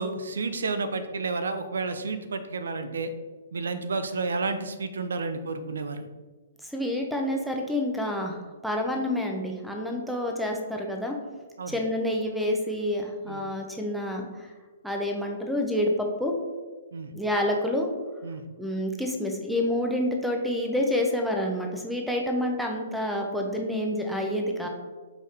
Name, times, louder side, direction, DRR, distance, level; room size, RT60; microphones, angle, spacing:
voice 1, 0.0-3.1 3.5-6.1 11.6-11.8 13.3-13.4 16.9-17.1 18.2-18.4, right 3 dB, 65° right, 10 dB, 0.4 m, -31 dB
voice 2, 6.6-11.2 11.7-14.5 14.8-16.3 17.1-17.9 18.6-24.7, left 1 dB, ahead, 1 dB, 0.6 m, -28 dB
4.7 x 2.7 x 3.4 m, 1.3 s
figure-of-eight pair, 120°, 0 cm